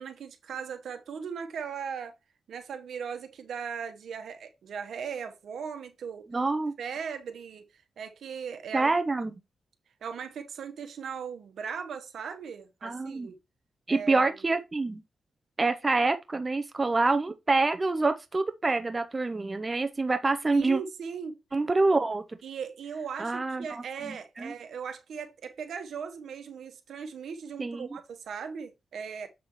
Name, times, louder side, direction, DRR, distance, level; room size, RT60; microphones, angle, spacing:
voice 1, 0.0-2.1 2.5-6.3 6.8-7.6 8.0-8.9 9.2-9.3 10.0-13.4 13.9-14.3 20.5-21.4 22.4-29.3, right 6 dB, 80° right, 1.1 m, -38 dB
voice 2, 6.3-6.7 8.7-9.4 12.8-13.3 13.9-15.0 15.6-20.8 21.5-22.2 23.2-24.5 27.6-27.9, right 3 dB, 25° right, 0.6 m, -27 dB
7.1 x 6.1 x 3.1 m
cardioid pair, 95°, 0 cm